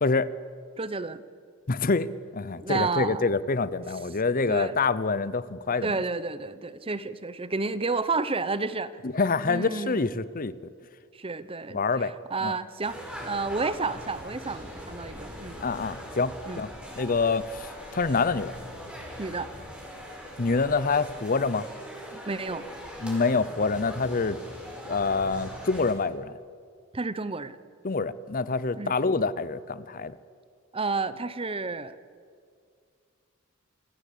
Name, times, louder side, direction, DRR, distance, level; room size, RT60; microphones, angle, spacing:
voice 1, 0.0-0.3 1.7-6.0 9.0-10.5 11.7-12.1 12.4-12.6 15.6-16.7 17.0-18.5 20.4-21.7 23.0-24.4 24.8-26.3 27.8-30.2, left 4 dB, 40° left, 17 dB, 0.7 m, -26 dB
voice 2, 0.8-1.2 2.6-3.3 4.5-4.8 5.8-8.9 9.4-10.1 11.1-13.0 13.2-15.7 16.5-16.6 19.2-19.5 22.3-22.6 26.9-27.6 28.8-28.9 30.7-32.0, right 3 dB, 25° right, 14 dB, 0.9 m, -31 dB
sound 1, 12.8-25.9, equal, 5° right, 4.9 m, -41 dB
27.0 x 17.0 x 8.4 m, 2.2 s
head